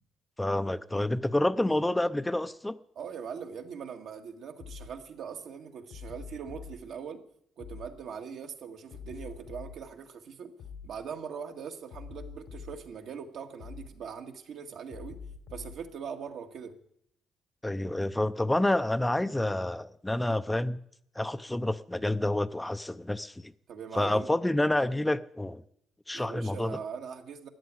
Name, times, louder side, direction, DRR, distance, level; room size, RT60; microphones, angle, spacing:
voice 1, 0.4-2.8 17.6-20.8 21.2-23.5 23.9-25.6 26.1-26.8, left 1 dB, 10° left, 0.6 m, -28 dB
voice 2, 3.0-7.2 7.6-10.5 10.8-15.2 15.5-16.7 23.7-24.3 26.1-27.5, right 6 dB, 75° right, 1.9 m, -41 dB
sound 1, 4.6-4.9 5.9-6.8 7.6-7.9 8.9-9.8 10.6-10.9 11.9-12.8 13.6-13.9 14.9-15.8, left 6 dB, 90° left, 3.7 m, -44 dB
14.0 x 9.9 x 9.6 m
cardioid pair, 90°, 0 cm